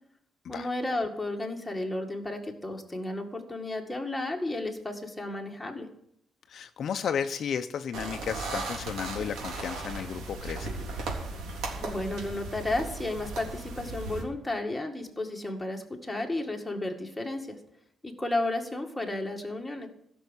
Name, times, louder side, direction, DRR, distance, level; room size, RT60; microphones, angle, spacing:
voice 1, 0.5-5.9 11.8-17.6 18.0-19.9, left 2 dB, 5° left, 1 dB, 2.0 m, -33 dB
voice 2, 6.5-10.7, left 7 dB, 50° left, 8 dB, 0.7 m, -33 dB
sound 1, 7.9-14.2, right 3 dB, 80° right, 3.4 m, -36 dB
16.5 x 6.4 x 8.2 m, 0.71 s
cardioid pair, 155°, 0 cm